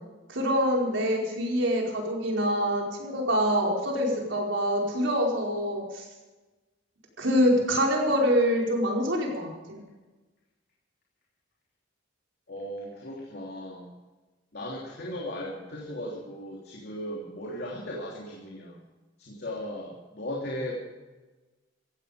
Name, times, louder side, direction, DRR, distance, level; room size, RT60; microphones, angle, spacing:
voice 1, 0.3-6.0 7.2-9.8, equal, 75° right, -1 dB, 4.8 m, -25 dB
voice 2, 12.5-13.9 14.5-18.8 19.2-20.7, left 1 dB, 60° left, -3 dB, 3.2 m, -37 dB
16.0 x 16.0 x 5.1 m, 1.2 s
head